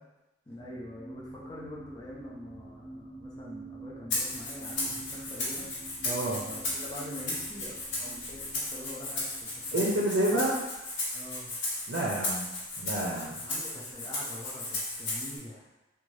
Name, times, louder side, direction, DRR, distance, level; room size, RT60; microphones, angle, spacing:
voice 1, 0.5-5.7 6.5-10.0 11.1-11.6 13.4-15.7, left 1 dB, 20° left, -5 dB, 0.4 m, -45 dB
sound 1, 0.6-10.6 11.2-11.3, right 2 dB, 55° left, 1.0 m, -48 dB
Rattle (instrument), 4.1-15.4, left 2 dB, 70° left, 0.9 m, -35 dB
voice 2, 6.0-6.5 9.7-10.6 11.9-13.4, right 1 dB, 60° right, -4 dB, 0.5 m, -29 dB
2.7 x 2.3 x 3.1 m, 0.99 s
head